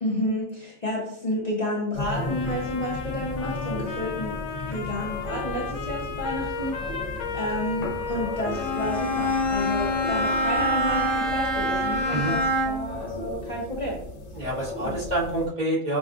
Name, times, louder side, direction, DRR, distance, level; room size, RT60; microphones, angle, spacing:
voice 1, 0.0-4.4 4.6-6.8 7.3-12.4 12.6-14.0 14.8-15.0, left 1 dB, 35° left, -5 dB, 0.7 m, -30 dB
sound 1, 1.9-15.5, left 2 dB, 70° left, 1.2 m, -35 dB
Trumpet, 2.1-12.5, left 5 dB, 90° left, 1.1 m, -35 dB
Bowed string instrument, 8.5-13.0, equal, 5° left, 0.4 m, -25 dB
voice 2, 14.3-16.0, right 1 dB, 35° right, -9 dB, 1.5 m, -27 dB
6.0 x 2.4 x 2.4 m, 0.67 s
omnidirectional pair, 1.4 m